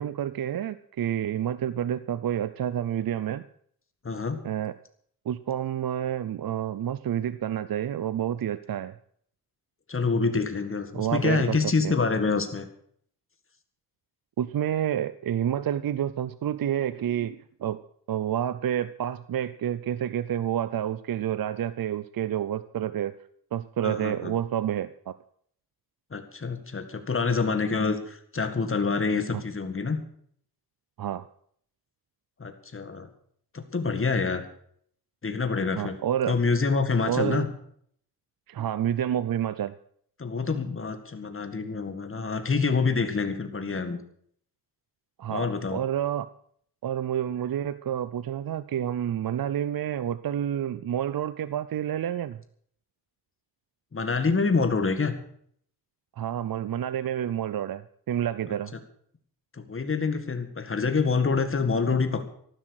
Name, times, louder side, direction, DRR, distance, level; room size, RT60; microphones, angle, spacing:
voice 1, 0.0-3.4 4.4-4.7 5.3-8.9 10.9-11.6 11.8-11.9 14.4-17.8 18.1-23.2 23.5-25.1 29.3-29.4 31.0-31.3 35.8-36.3 37.1-37.5 38.5-39.7 45.2-46.3 46.8-52.4 56.2-58.7, right 10 dB, 70° right, 15 dB, 0.6 m, -29 dB
voice 2, 4.0-4.4 9.9-12.7 23.8-24.3 26.1-30.0 32.4-33.1 33.5-34.4 35.2-36.0 36.3-37.5 40.2-44.0 45.3-45.8 53.9-55.1 59.5-62.2, left 4 dB, 35° left, 8 dB, 2.0 m, -26 dB
14.5 x 12.0 x 6.5 m, 0.63 s
wide cardioid pair, 145°, 37 cm